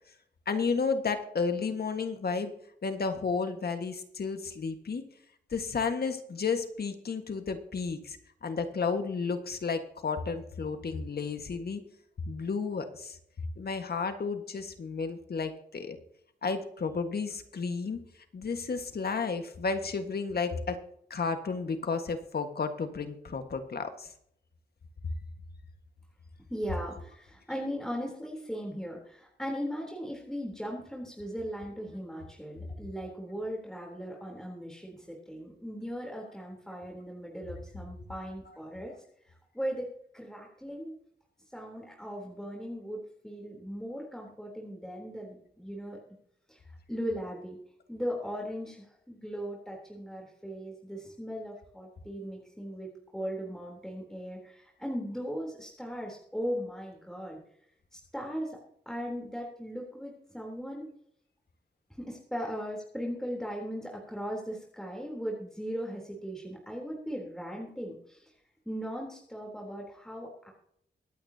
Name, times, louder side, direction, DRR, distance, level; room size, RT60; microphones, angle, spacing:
voice 1, 0.4-2.5 2.8-5.0 5.5-11.8 12.2-13.2 13.6-16.0 16.4-18.0 18.3-20.8 21.1-24.1, left 5 dB, 60° left, 7 dB, 1.7 m, -32 dB
voice 2, 26.5-38.9 39.3-39.9 40.1-40.9 41.5-46.0 46.5-46.6 46.9-47.6 47.9-57.4 57.9-58.6 58.9-60.9 62.0-68.3 68.7-70.5, equal, 5° left, -1 dB, 3.6 m, -38 dB
24.0 x 8.8 x 2.9 m, 0.70 s
cardioid pair, 70°, 18 cm